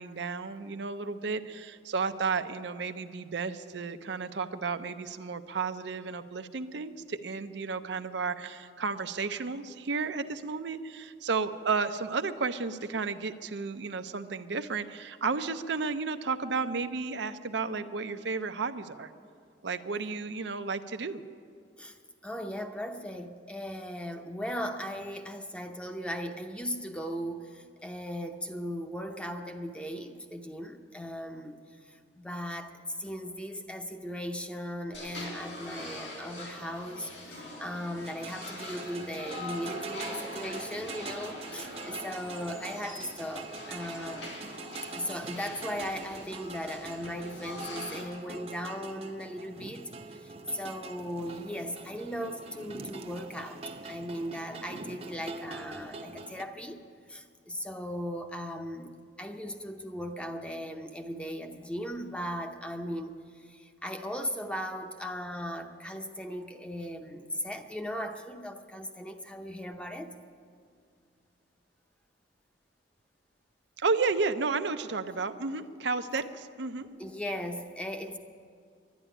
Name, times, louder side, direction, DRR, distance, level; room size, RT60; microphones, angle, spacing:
voice 1, 0.0-19.1 19.6-21.2 73.8-76.9, right 4 dB, 70° right, 9 dB, 0.6 m, -32 dB
voice 2, 22.2-31.6 31.9-44.3 44.9-56.8 57.1-70.1 77.0-78.2, equal, 5° left, 5 dB, 0.7 m, -38 dB
sound 1, 34.9-48.0, left 1 dB, 90° left, 4.1 m, -43 dB
sound 2, 38.0-56.4, right 3 dB, 35° right, 0.7 m, -44 dB
11.5 x 11.0 x 10.0 m, 2.3 s
head